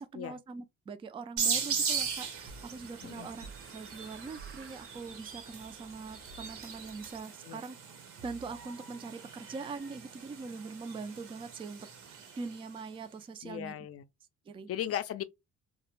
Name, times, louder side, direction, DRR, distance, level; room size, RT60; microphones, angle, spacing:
voice 1, 0.0-7.8 8.2-13.7 14.5-14.7, right 4 dB, 15° right, 0.3 m, -43 dB
sound 1, 1.4-12.7, right 6 dB, 70° right, 0.9 m, -39 dB
sound 2, 1.8-7.2, right 5 dB, 45° right, 0.7 m, -51 dB
sound 3, 2.5-2.7 3.4-3.7 4.4-4.6 6.3-6.6 8.2-8.7, right 5 dB, 90° right, 0.5 m, -49 dB
voice 2, 13.4-14.0 14.7-15.2, left 11 dB, 50° left, 0.4 m, -36 dB
2.1 x 2.1 x 3.0 m
cardioid pair, 90°, 31 cm